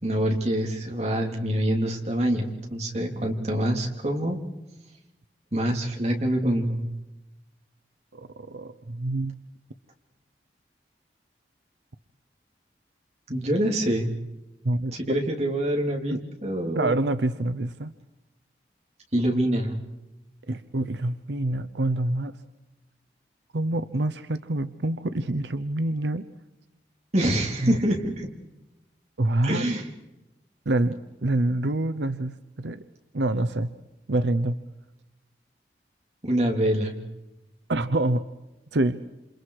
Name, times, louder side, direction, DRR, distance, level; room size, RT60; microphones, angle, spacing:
voice 1, 0.0-4.4 5.5-6.8 13.3-14.1 14.9-17.0 19.1-19.8 27.1-28.3 29.4-29.8 36.2-37.0, right 1 dB, 40° right, 1 dB, 3.1 m, -25 dB
voice 2, 8.1-9.3 14.6-15.0 16.1-16.2 16.8-17.9 20.5-22.4 23.5-26.2 27.6-27.8 29.2-29.6 30.7-32.8 33.1-33.7 34.1-34.6 37.7-38.2 38.7-39.0, right 2 dB, 90° right, 11 dB, 0.8 m, -26 dB
28.5 x 27.0 x 4.8 m, 0.98 s
head